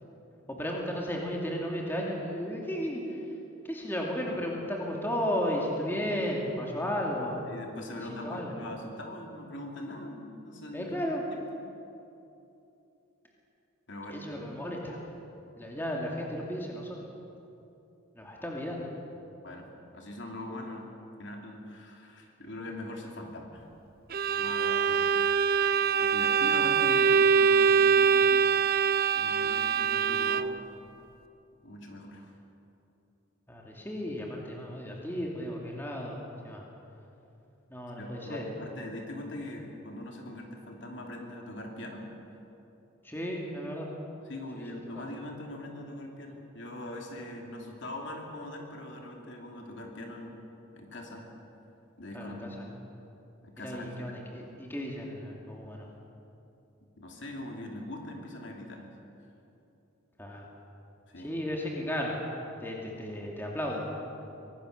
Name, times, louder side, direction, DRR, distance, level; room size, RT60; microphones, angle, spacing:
voice 1, 0.5-3.2 3.6-7.4 8.0-8.5 10.7-11.2 14.1-15.0 15.6-17.0 18.1-18.9 24.9-25.1 33.5-36.2 36.4-36.6 37.7-38.4 43.0-43.9 44.6-44.7 44.9-45.0 52.1-52.5 53.6-55.9 60.2-60.4 61.2-62.2 62.6-63.8 64.2-64.5, equal, 10° left, -2 dB, 2.6 m, -34 dB
voice 2, 7.5-11.4 13.9-14.2 19.4-19.6 19.9-20.9 21.2-23.7 24.2-25.0 26.0-28.5 29.2-30.8 31.6-32.3 38.0-42.1 44.3-50.5 50.7-51.2 52.0-52.6 53.4-54.1 57.0-58.9 61.1-61.3, left 1 dB, 60° left, 1 dB, 2.8 m, -42 dB
Bowed string instrument, 24.1-30.7, right 6 dB, 45° right, 0.5 m, -24 dB
23.5 x 18.5 x 6.7 m, 2.8 s
head